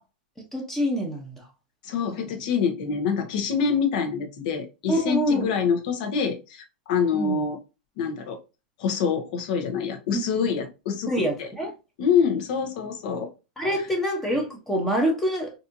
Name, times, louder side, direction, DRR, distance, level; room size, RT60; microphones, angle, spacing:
voice 1, 0.5-1.4 4.9-5.5 7.1-7.4 10.1-10.2 11.1-11.7 13.6-15.5, equal, 5° left, 0.8 m, -25 dB
voice 2, 1.8-7.6 8.0-8.4 8.8-11.1 11.4-11.5 12.0-13.3, left 6 dB, 55° left, 1.0 m, -26 dB
4.1 x 2.7 x 2.6 m
supercardioid pair, 155°, 5 cm